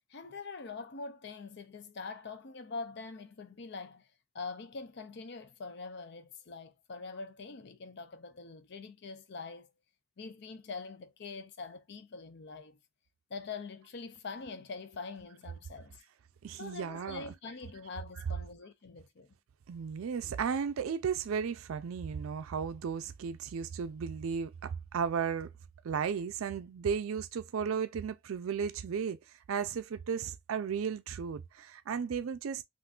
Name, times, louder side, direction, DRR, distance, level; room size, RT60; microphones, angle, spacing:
voice 1, 0.1-4.1 4.3-9.7 10.2-12.8 13.3-16.0 16.6-19.3, left 4 dB, 55° left, 0.5 m, -44 dB
voice 2, 16.4-17.2 19.7-25.5 25.8-29.2 29.5-32.6, right 6 dB, 80° right, 0.4 m, -34 dB
3.6 x 2.5 x 2.4 m
head